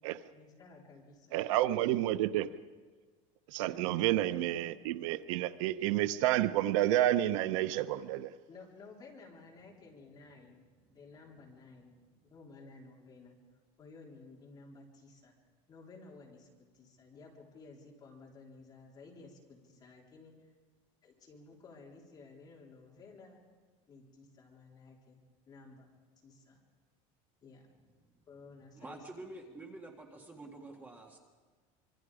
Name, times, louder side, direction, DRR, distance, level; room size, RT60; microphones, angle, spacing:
voice 1, 0.3-1.4 3.6-4.7 8.5-13.4 13.8-15.4 15.7-20.5 21.0-23.4 23.9-25.2 25.5-25.9 26.2-26.6 27.4-27.7 28.3-29.1, left 3 dB, 25° left, 3.8 m, -55 dB
voice 2, 1.3-2.5 3.5-8.3, right 13 dB, 85° right, 0.8 m, -30 dB
voice 3, 28.7-31.2, right 2 dB, 10° right, 1.7 m, -48 dB
26.0 x 24.0 x 5.0 m
cardioid pair, 175°, 16 cm